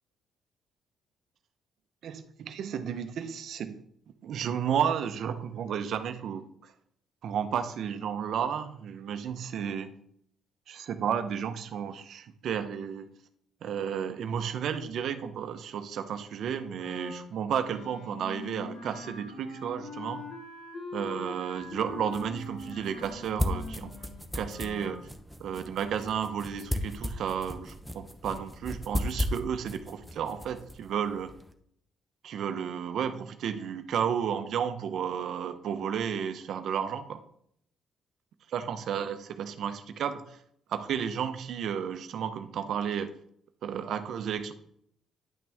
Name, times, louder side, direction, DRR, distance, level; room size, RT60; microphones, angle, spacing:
voice 1, 2.0-3.8 4.2-6.7 7.2-9.9 10.7-13.1 13.6-20.2 20.9-23.9 24.3-25.1 25.4-31.3 32.2-37.2 38.5-40.4 40.7-43.1 43.6-44.5, right 8 dB, 70° right, 9 dB, 0.8 m, -32 dB
Wind instrument woodwind instrument, 16.7-25.0, left 3 dB, 85° left, 1.8 m, -43 dB
sound 1, 21.6-31.5, left 1 dB, ahead, 0.9 m, -37 dB
10.0 x 6.0 x 3.5 m, 0.68 s
cardioid pair, 90°, 0 cm